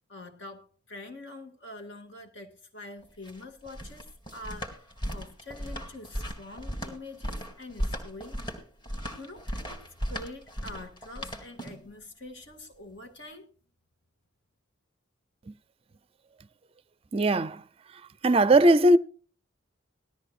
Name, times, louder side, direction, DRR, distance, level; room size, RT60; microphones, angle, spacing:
voice 1, 0.1-8.4 9.1-13.5, left 2 dB, 60° left, 2.0 m, -45 dB
sound 1, 3.0-11.9, equal, 25° left, 2.1 m, -36 dB
voice 2, 17.1-17.6 18.2-19.0, right 1 dB, 30° right, 0.4 m, -19 dB
18.5 x 13.0 x 2.5 m
head